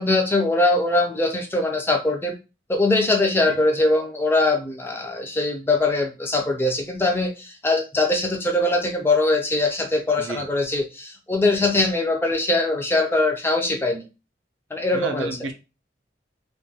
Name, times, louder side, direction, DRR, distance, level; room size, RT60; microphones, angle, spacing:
voice 1, 0.0-2.3 2.7-14.0 14.7-15.4, left 2 dB, 10° left, 0.3 m, -22 dB
voice 2, 14.9-15.5, right 3 dB, 80° right, 0.4 m, -32 dB
2.3 x 2.2 x 2.7 m
head